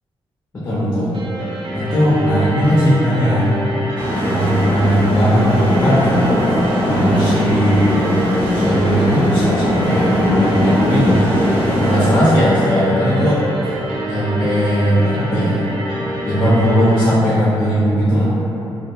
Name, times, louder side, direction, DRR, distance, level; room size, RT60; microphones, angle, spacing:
voice 1, 0.5-1.1 1.7-3.5 4.2-6.1 6.8-8.0 8.5-11.2 11.7-13.4 14.1-15.6 16.2-18.3, equal, 25° left, -9 dB, 0.4 m, -17 dB
Dark Piano Part, 1.1-17.1, equal, 60° right, 0.4 m, -26 dB
sound 1, 4.0-12.2, equal, 20° right, 0.8 m, -19 dB
2.4 x 2.1 x 2.8 m, 2.9 s
wide cardioid pair, 160°, 10 cm